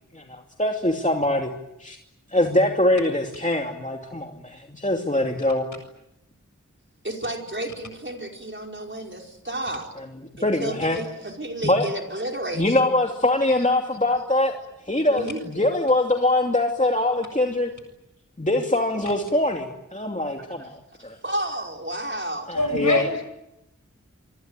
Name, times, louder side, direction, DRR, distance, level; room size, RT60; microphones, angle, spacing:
voice 1, 0.1-1.5 1.8-2.0 2.3-5.7 10.4-11.0 11.6-11.9 12.6-14.6 14.9-17.7 18.4-21.2 22.5-23.1, left 1 dB, 25° left, 2 dB, 2.6 m, -23 dB
voice 2, 7.0-9.9 10.4-12.8 15.1-15.4 20.6-20.7 21.0-22.5, right 1 dB, 40° right, 2 dB, 5.1 m, -32 dB
voice 3, 22.5-23.2, left 2 dB, 75° left, 6 dB, 7.2 m, -23 dB
26.5 x 24.0 x 9.1 m, 0.87 s
wide cardioid pair, 45°, 31 cm